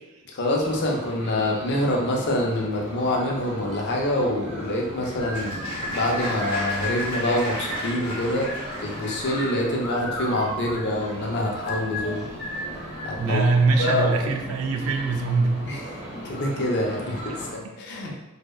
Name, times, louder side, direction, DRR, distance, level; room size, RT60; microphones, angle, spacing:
voice 1, 0.3-12.2 13.0-13.5 13.8-14.3 15.7-15.8 16.2-18.2, left 1 dB, 50° left, -2 dB, 0.5 m, -26 dB
sound 1, 0.6-17.5, equal, 25° right, 0.7 m, -38 dB
Applause, 4.6-9.5, equal, 25° left, 0.9 m, -35 dB
sound 2, 5.2-13.2, left 1 dB, 75° left, 0.8 m, -34 dB
voice 2, 13.2-15.6, right 3 dB, 65° right, 4 dB, 0.3 m, -22 dB
2.7 x 2.0 x 2.2 m, 0.96 s
head